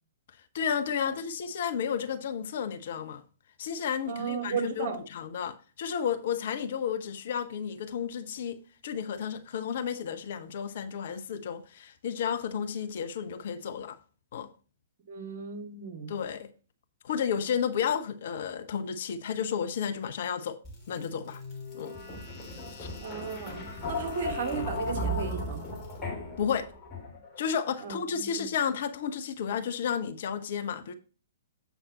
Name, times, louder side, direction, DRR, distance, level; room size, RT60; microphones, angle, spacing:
voice 1, 0.5-3.2 3.6-14.0 14.3-14.5 16.1-16.5 17.0-20.6 20.9-21.4 21.7-22.0 22.8-22.9 26.4-26.7 27.4-30.9, left 7 dB, 50° left, 0.9 m, -32 dB
voice 2, 4.1-5.0 15.1-16.1 23.0-25.6 27.8-28.5, right 6 dB, 45° right, 2.2 m, -35 dB
sound 1, 20.6-27.4, left 1 dB, 15° left, 3.2 m, -36 dB
8.1 x 5.8 x 4.1 m
figure-of-eight pair, 115°, 0 cm